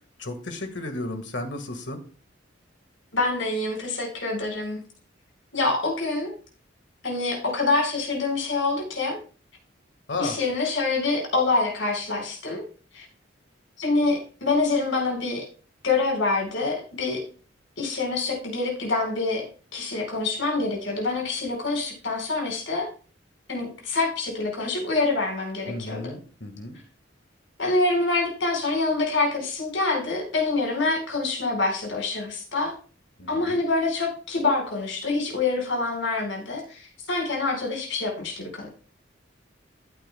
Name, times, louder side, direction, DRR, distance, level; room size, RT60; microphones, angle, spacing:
voice 1, 0.2-2.0 10.1-10.4 25.7-26.8 33.2-33.6, left 2 dB, 65° left, 6 dB, 1.7 m, -33 dB
voice 2, 3.1-4.8 5.5-6.3 7.0-9.2 10.2-12.6 12.9-13.1 13.8-15.4 15.8-17.2 17.8-19.4 19.7-22.9 23.5-26.1 27.6-32.7 33.3-38.7, left 3 dB, 80° left, 0 dB, 4.8 m, -26 dB
14.0 x 9.0 x 2.3 m, 0.38 s
head